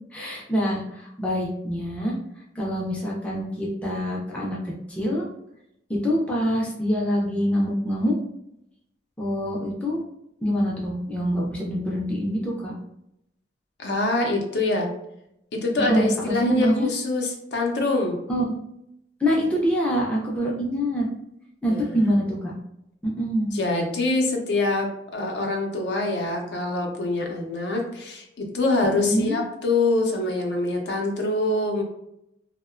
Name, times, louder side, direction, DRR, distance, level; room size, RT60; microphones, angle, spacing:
voice 1, 0.1-2.1 2.6-4.6 4.9-5.3 5.9-8.1 9.2-10.0 10.4-12.7 15.9-16.9 18.3-18.5 19.2-21.1 21.6-22.5 23.2-23.5 29.0-29.4, equal, 5° left, -5 dB, 0.4 m, -25 dB
voice 2, 13.8-14.9 15.5-18.2 21.6-22.0 23.5-31.8, left 2 dB, 65° left, 2 dB, 0.5 m, -25 dB
2.7 x 2.1 x 2.4 m, 0.80 s
head